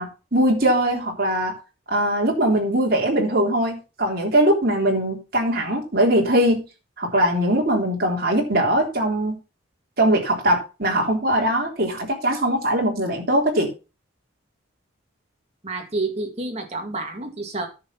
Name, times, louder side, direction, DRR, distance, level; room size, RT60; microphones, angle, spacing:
voice 1, 0.0-1.5 1.9-6.6 7.0-9.4 10.0-13.7, right 1 dB, 50° right, 3.5 m, -21 dB
voice 2, 15.6-17.7, right 2 dB, 35° right, 2.1 m, -29 dB
10.0 x 6.1 x 5.9 m
head